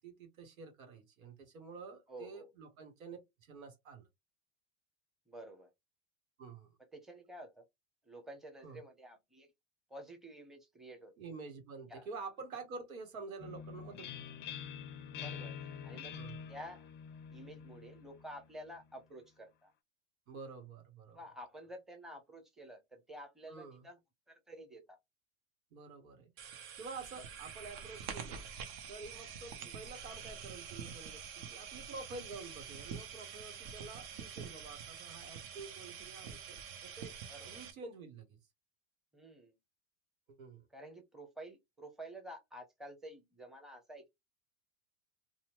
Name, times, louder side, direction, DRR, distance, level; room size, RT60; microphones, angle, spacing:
voice 1, 0.0-4.1 6.4-6.7 8.6-8.8 11.2-14.1 16.1-16.4 20.3-21.2 23.5-23.9 25.7-28.4 28.9-37.1 37.4-38.4 40.3-40.7, right 4 dB, 85° right, 1.2 m, -49 dB
voice 2, 2.1-2.5 5.3-5.7 6.9-7.6 8.0-9.5 9.9-11.1 11.9-12.1 15.1-15.5 15.8-16.1 16.5-16.9 17.3-19.7 21.1-24.0 24.3-25.0 29.6-29.8 37.3-37.6 39.1-39.5 40.7-44.1, right 1 dB, ahead, 0.8 m, -50 dB
sound 1, 13.4-19.0, left 8 dB, 30° left, 0.5 m, -47 dB
sound 2, 26.4-37.7, right 7 dB, 55° right, 0.9 m, -46 dB
2.8 x 2.2 x 2.9 m
hypercardioid pair, 100°, 41 cm